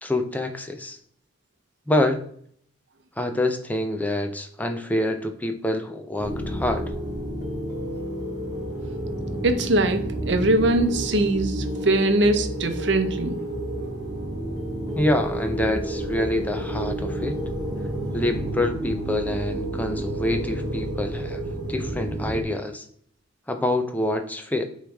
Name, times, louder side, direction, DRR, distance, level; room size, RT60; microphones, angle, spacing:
voice 1, 0.0-1.0 1.9-2.3 3.2-6.8 14.9-17.4 18.1-21.4 21.7-22.8 23.5-24.7, left 1 dB, 10° left, 5 dB, 0.6 m, -26 dB
sound 1, 6.2-22.4, right 1 dB, 20° right, 1.7 m, -30 dB
voice 2, 9.4-13.4, right 2 dB, 65° right, 8 dB, 0.8 m, -22 dB
8.8 x 3.2 x 3.5 m, 0.62 s
head